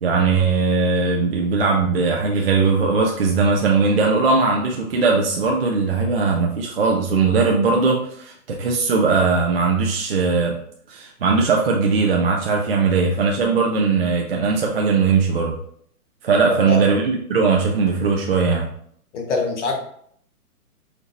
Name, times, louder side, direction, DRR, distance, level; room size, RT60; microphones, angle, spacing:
voice 1, 0.0-8.3 8.6-10.6 10.9-15.6 16.2-18.7, right 4 dB, 45° right, 0 dB, 0.4 m, -19 dB
voice 2, 16.5-16.8 19.1-19.7, left 3 dB, 50° left, 2 dB, 1.0 m, -24 dB
4.4 x 2.9 x 2.4 m, 0.65 s
hypercardioid pair, 150°, 45 cm